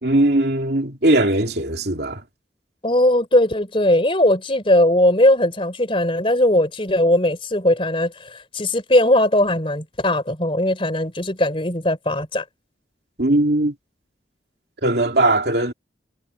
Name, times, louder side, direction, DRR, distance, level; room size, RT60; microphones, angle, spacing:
voice 1, 0.0-2.2 13.2-13.7 14.8-15.7, right 1 dB, 60° right, 2.9 m, -19 dB
voice 2, 2.8-12.4, left 1 dB, 30° left, 3.5 m, -19 dB
head